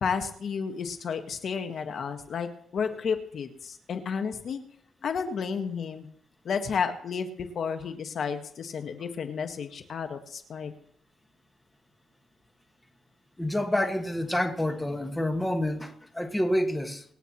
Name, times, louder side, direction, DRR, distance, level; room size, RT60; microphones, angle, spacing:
voice 1, 0.0-4.6 5.0-6.1 6.4-10.7, left 6 dB, 55° left, 7 dB, 1.4 m, -32 dB
voice 2, 13.4-17.0, left 1 dB, 10° left, 5 dB, 1.6 m, -28 dB
25.0 x 9.1 x 3.0 m, 0.65 s
cardioid pair, 90°, 0 cm